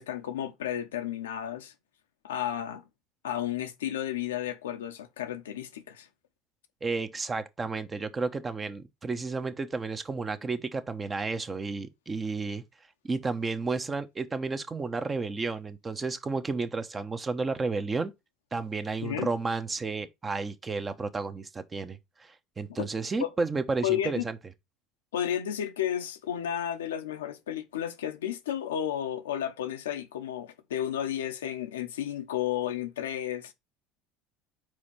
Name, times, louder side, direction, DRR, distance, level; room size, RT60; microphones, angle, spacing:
voice 1, 0.0-1.7 2.2-2.8 3.2-6.1 19.0-19.3 22.7-22.9 23.2-23.3 23.8-24.3 25.1-33.5, left 10 dB, 90° left, 0.8 m, -32 dB
voice 2, 6.8-12.6 13.0-18.1 18.5-24.4, right 4 dB, 25° right, 1.0 m, -32 dB
4.8 x 4.3 x 5.7 m
hypercardioid pair, 80°, 0 cm